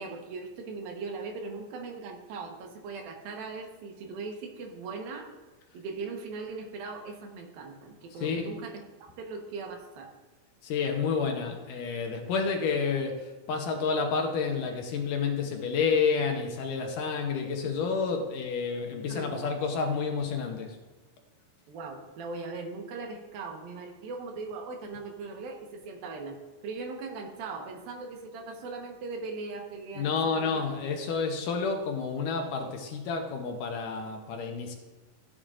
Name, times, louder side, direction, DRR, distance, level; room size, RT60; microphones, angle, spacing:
voice 1, 0.0-5.3 5.7-10.1 17.6-17.7 19.1-19.6 21.7-26.4 26.6-30.1 30.3-30.5, right 4 dB, 75° right, 3 dB, 2.9 m, -39 dB
voice 2, 8.2-8.5 10.6-20.8 30.0-34.7, left 5 dB, 70° left, 3 dB, 2.2 m, -30 dB
14.5 x 9.1 x 2.5 m, 1.2 s
omnidirectional pair, 4.3 m